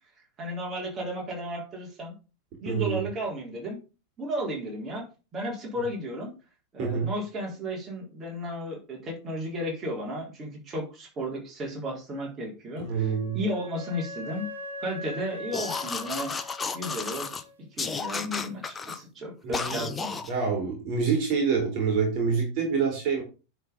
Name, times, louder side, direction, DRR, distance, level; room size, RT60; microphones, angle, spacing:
voice 1, 0.4-2.1 2.6-3.8 4.2-5.1 5.3-6.3 6.7-14.5 14.8-16.3 16.7-17.4 17.7-20.2, equal, 25° right, -2 dB, 3.9 m, -34 dB
voice 2, 2.7-3.1 6.8-7.1 12.8-13.4 19.4-19.9 20.3-23.2, right 5 dB, 40° right, 1 dB, 3.6 m, -26 dB
Wind instrument woodwind instrument, 12.9-17.5, left 2 dB, 75° right, 2.6 m, -41 dB
sound 1, 15.5-17.4 17.8-19.0 19.5-20.3, left 4 dB, 15° left, 0.8 m, -33 dB
10.5 x 4.7 x 5.2 m, 0.33 s
figure-of-eight pair, 90°, 0 cm